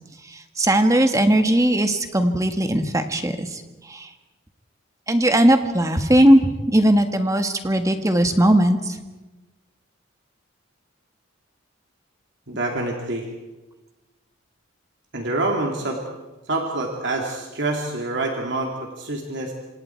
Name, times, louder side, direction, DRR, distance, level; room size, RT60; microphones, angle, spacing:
voice 1, 0.3-3.6 3.9-4.1 5.1-9.0, right 1 dB, 15° right, 6 dB, 1.6 m, -18 dB
voice 2, 12.5-13.3 15.1-16.0 16.5-19.5, right 2 dB, 60° right, 1 dB, 2.7 m, -26 dB
27.0 x 26.5 x 4.6 m, 1.1 s
head